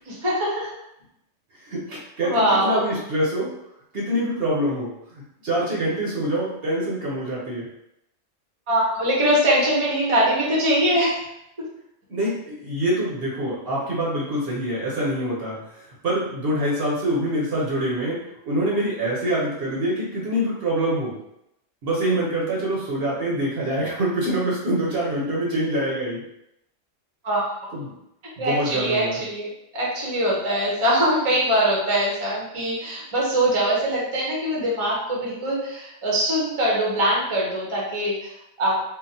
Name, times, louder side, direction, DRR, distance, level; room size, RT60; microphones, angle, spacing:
voice 1, 0.1-0.7 2.2-2.8 8.7-11.2 27.2-27.7 28.4-29.5 29.7-38.3 38.6-38.7, right 1 dB, 30° right, -4 dB, 0.7 m, -22 dB
voice 2, 1.6-3.5 3.9-7.7 12.1-18.2 18.4-21.2 21.8-26.2 27.7-27.9 28.4-29.2, right 1 dB, 55° right, -5 dB, 1.0 m, -25 dB
3.8 x 2.1 x 2.7 m, 0.82 s
omnidirectional pair, 1.3 m